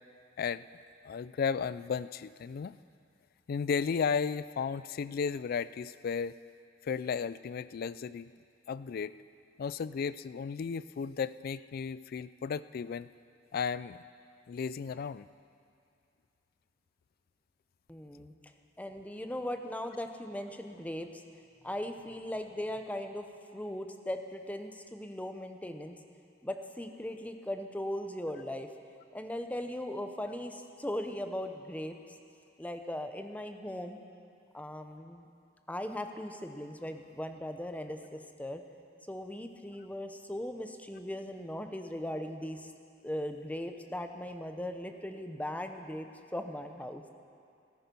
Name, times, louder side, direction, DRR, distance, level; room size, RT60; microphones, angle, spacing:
voice 1, 1.0-2.8 3.5-6.4 6.8-8.3 8.7-9.2 9.6-13.1 13.5-14.0 14.5-15.3, left 6 dB, 50° left, 16 dB, 0.3 m, -34 dB
voice 2, 17.9-18.3 18.8-21.1 21.6-23.3 23.5-26.0 26.4-28.7 29.1-32.0 32.6-34.0 34.5-35.3 35.7-38.6 39.1-42.6 43.0-46.1 46.3-47.1, left 1 dB, 10° left, 6 dB, 0.7 m, -38 dB
14.5 x 13.5 x 5.4 m, 2.4 s
head